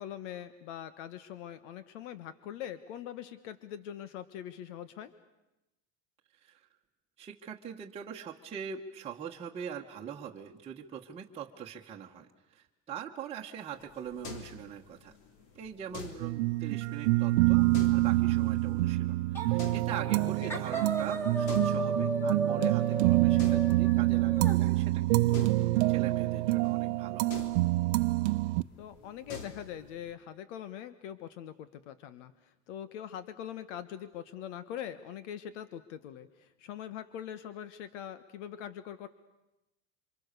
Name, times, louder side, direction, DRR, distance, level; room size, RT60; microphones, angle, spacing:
voice 1, 0.0-5.1 20.2-20.6 28.8-32.3 32.7-39.1, left 10 dB, 85° left, 13 dB, 1.5 m, -42 dB
voice 2, 7.2-15.1 15.5-27.3, right 8 dB, 15° right, -2 dB, 1.3 m, -42 dB
sound 1, 13.7-30.1, left 4 dB, 55° left, 3.5 m, -49 dB
sound 2, 16.2-28.6, right 19 dB, 75° right, 0.8 m, -27 dB
sound 3, 19.3-19.6 19.9-20.2 20.5-24.6, right 2 dB, 5° left, 2.5 m, -34 dB
28.0 x 26.0 x 6.8 m, 0.97 s
cardioid pair, 175°, 36 cm